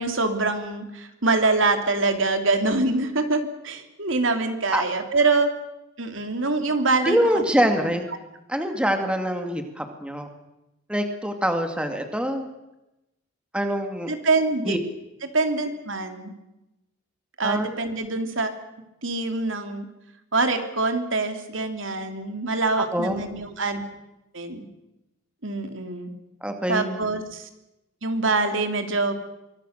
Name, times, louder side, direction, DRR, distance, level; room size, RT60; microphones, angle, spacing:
voice 1, 0.0-5.5 6.0-7.4 14.1-14.8 15.3-16.3 17.4-18.5 19.0-19.8 20.3-23.8 24.3-24.6 25.4-26.1 26.7-27.5 28.0-29.1, right 3 dB, 75° right, 6 dB, 3.0 m, -24 dB
voice 2, 7.0-8.1 8.5-10.3 10.9-12.5 13.5-14.1 14.7-14.8 17.4-17.7 22.8-23.2 26.4-27.0, equal, 5° right, 5 dB, 2.3 m, -24 dB
25.0 x 24.5 x 6.7 m, 0.93 s
head